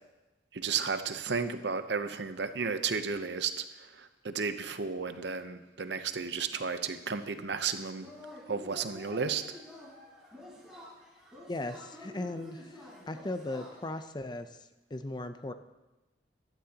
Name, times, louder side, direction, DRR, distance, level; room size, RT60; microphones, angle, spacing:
voice 1, 0.5-8.1 8.5-9.4, right 5 dB, 65° right, 9 dB, 0.8 m, -33 dB
Yell / Cheering, 8.0-14.1, left 1 dB, 5° right, 4.4 m, -49 dB
voice 2, 11.5-15.5, left 2 dB, 25° left, 9 dB, 0.6 m, -38 dB
15.5 x 12.0 x 2.9 m, 1.1 s
head